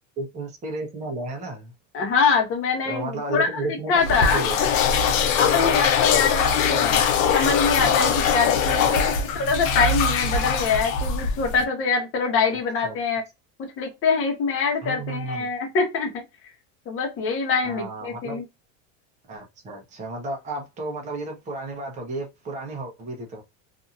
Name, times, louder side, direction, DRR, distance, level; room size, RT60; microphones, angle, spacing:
voice 1, 0.2-1.7 2.8-4.6 6.5-7.0 8.4-9.1 12.8-13.0 14.8-15.5 17.6-18.4 19.3-23.4, right 2 dB, 20° right, 0.8 m, -33 dB
voice 2, 1.9-4.4 5.4-6.9 7.3-9.0 9.3-13.2 13.8-16.2 16.9-18.4, left 5 dB, 35° left, 1.2 m, -24 dB
sound 1, 4.0-11.6, left 6 dB, 90° left, 0.8 m, -22 dB
2.8 x 2.7 x 2.5 m
supercardioid pair, 140°, 39 cm